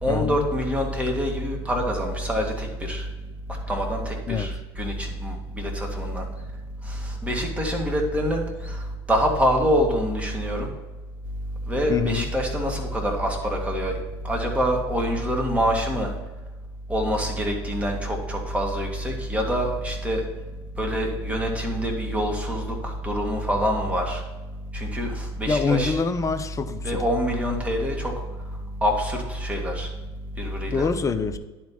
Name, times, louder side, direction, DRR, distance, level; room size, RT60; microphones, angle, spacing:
voice 1, 0.0-3.0 3.7-6.3 6.9-8.8 9.1-10.7 11.7-14.0 14.2-16.1 16.9-20.2 20.8-24.2 24.7-26.0 26.8-28.1 28.8-29.9 30.4-30.9, equal, 10° right, 0 dB, 2.2 m, -25 dB
voice 2, 11.9-12.3 25.5-27.0 30.7-31.4, left 5 dB, 25° left, 10 dB, 0.7 m, -25 dB
10.5 x 4.5 x 5.7 m, 1.2 s
hypercardioid pair, 75°, 14 cm